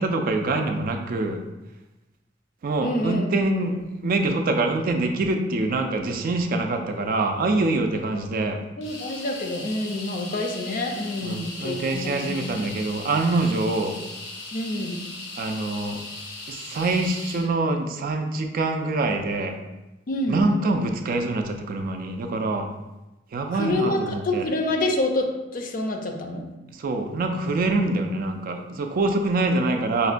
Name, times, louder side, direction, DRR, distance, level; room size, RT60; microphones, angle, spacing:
voice 1, 0.0-1.4 2.6-3.8 4.0-8.6 11.2-14.0 15.4-16.0 16.5-19.5 20.3-22.7 23.3-24.5 26.8-30.1, right 2 dB, 50° right, 4 dB, 0.3 m, -25 dB
voice 2, 2.8-3.8 8.8-12.4 14.5-15.0 20.1-20.4 23.5-26.5, left 1 dB, 45° left, 3 dB, 0.4 m, -27 dB
sound 1, 8.8-17.5, left 2 dB, 80° left, 0.7 m, -38 dB
4.9 x 2.2 x 2.5 m, 1.0 s
head